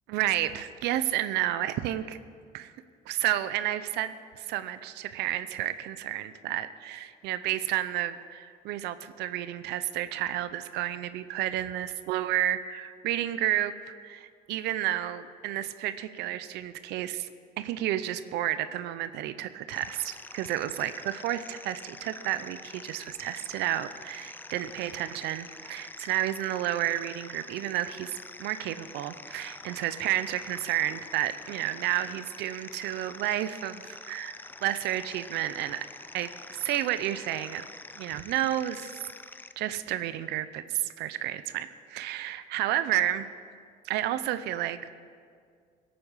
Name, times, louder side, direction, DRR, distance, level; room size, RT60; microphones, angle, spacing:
voice 1, 0.1-2.2 2.5-2.7 3.1-13.7 14.0-17.3 17.6-28.1 28.4-35.9 36.1-37.7 38.0-38.9 39.6-43.3 43.8-44.9, right 13 dB, 85° right, 13 dB, 0.6 m, -31 dB
sound 1, 19.7-39.5, left 3 dB, 10° left, 0.4 m, -46 dB
17.5 x 8.6 x 5.6 m, 2.1 s
cardioid pair, 110°, 17 cm